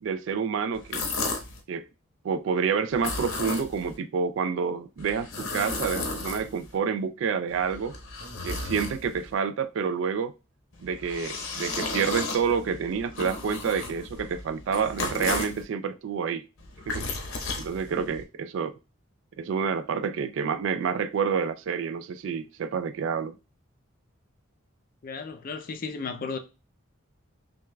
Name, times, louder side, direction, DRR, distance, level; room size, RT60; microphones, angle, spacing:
voice 1, 0.0-1.1 1.7-1.8 2.2-8.0 8.4-10.3 10.8-16.5 16.9-17.0 17.6-18.8 19.4-23.4, right 6 dB, 60° right, 0.3 m, -28 dB
sound 1, 0.7-1.6 2.9-4.0 5.0-6.8 7.5-9.3 10.7-15.6 16.6-18.2, left 3 dB, 65° left, 0.8 m, -34 dB
voice 2, 25.0-26.4, left 4 dB, 40° left, 0.4 m, -34 dB
6.0 x 2.3 x 2.2 m
head